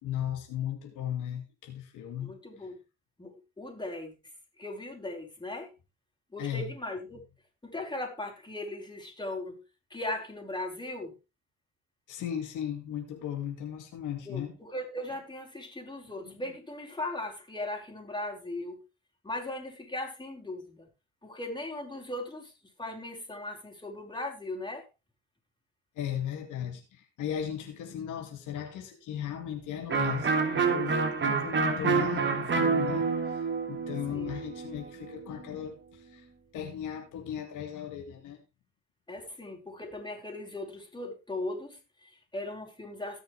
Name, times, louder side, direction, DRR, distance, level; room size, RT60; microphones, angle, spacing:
voice 1, 0.0-2.3 2.6-2.7 6.4-6.7 12.1-14.6 16.2-16.4 26.0-36.2 36.5-38.4, left 10 dB, 85° left, 2.5 m, -36 dB
voice 2, 2.2-2.8 3.2-4.1 4.6-5.7 6.3-7.2 7.6-9.6 9.9-11.2 14.3-18.8 19.2-20.9 21.2-22.5 22.8-24.9 34.1-34.3 39.1-43.2, left 1 dB, 15° left, 4.9 m, -38 dB
Electric guitar, 29.9-35.5, right 5 dB, 40° right, 2.9 m, -28 dB
18.5 x 6.6 x 3.3 m
cardioid pair, 90°, 30 cm